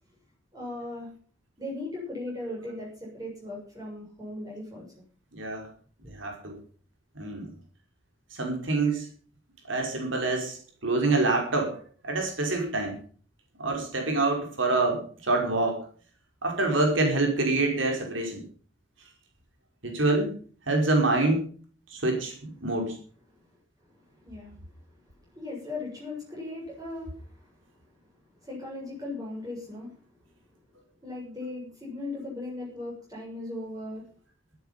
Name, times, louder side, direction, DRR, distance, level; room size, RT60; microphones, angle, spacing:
voice 1, 0.5-1.1 1.6-4.9 6.0-6.1 24.1-24.6 25.3-27.6 28.4-30.0 31.0-34.1, left 2 dB, 20° right, -5 dB, 7.3 m, -38 dB
voice 2, 5.3-5.7 6.1-6.6 7.2-7.5 8.3-9.1 9.7-10.6 10.8-11.8 12.0-13.0 13.6-15.8 16.4-18.4 19.8-20.3 20.7-21.5 21.9-22.3 22.6-23.0, right 2 dB, 80° right, 2 dB, 5.4 m, -26 dB
14.0 x 13.0 x 5.7 m, 0.43 s
head